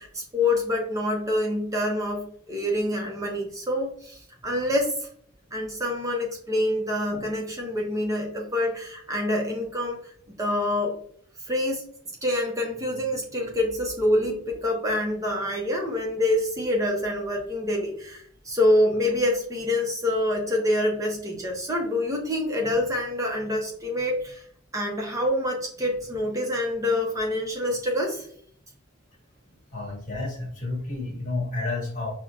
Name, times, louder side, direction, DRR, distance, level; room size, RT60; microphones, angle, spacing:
voice 1, 0.0-5.1 5.5-10.1 10.4-11.0 11.5-11.9 12.2-24.5 24.7-28.3, left 1 dB, 15° right, 0 dB, 0.6 m, -26 dB
voice 2, 29.7-32.1, left 2 dB, 45° left, -1 dB, 1.3 m, -30 dB
5.9 x 2.1 x 2.4 m, 0.62 s
head